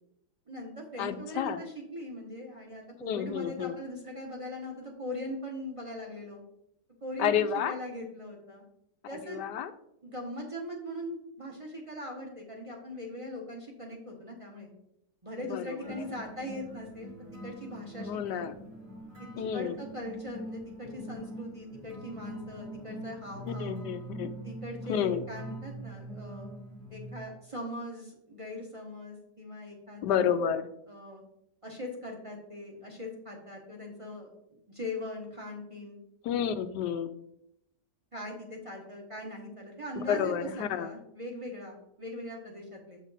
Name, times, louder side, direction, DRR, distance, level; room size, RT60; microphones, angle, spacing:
voice 1, 0.5-6.4 7.0-8.6 9.1-9.4 10.0-14.7 15.2-18.5 19.2-23.8 24.4-26.5 26.9-30.4 30.9-31.2 31.6-34.3 34.7-36.0 38.1-43.0, left 1 dB, 20° right, -1 dB, 1.1 m, -41 dB
voice 2, 1.0-1.6 3.1-3.8 7.2-7.8 9.1-9.7 15.5-16.1 18.0-18.6 19.4-19.8 23.5-24.3 24.9-25.2 30.0-30.7 36.2-37.1 39.9-40.9, left 8 dB, 85° left, 10 dB, 1.2 m, -30 dB
sound 1, 15.8-27.2, right 1 dB, 50° right, 2.4 m, -43 dB
7.4 x 5.4 x 4.1 m, 0.77 s
omnidirectional pair, 1.8 m